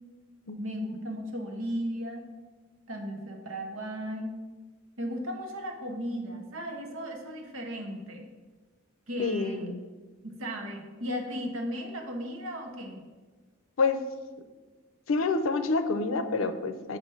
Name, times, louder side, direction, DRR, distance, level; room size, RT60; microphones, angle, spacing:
voice 1, 0.6-2.3 2.9-4.4 5.0-8.3 9.1-9.7 10.2-13.0, equal, 85° right, 3 dB, 1.0 m, -36 dB
voice 2, 9.2-9.8 13.8-14.0 15.1-17.0, left 3 dB, 85° left, 8 dB, 0.5 m, -27 dB
7.7 x 2.6 x 5.5 m, 1.3 s
head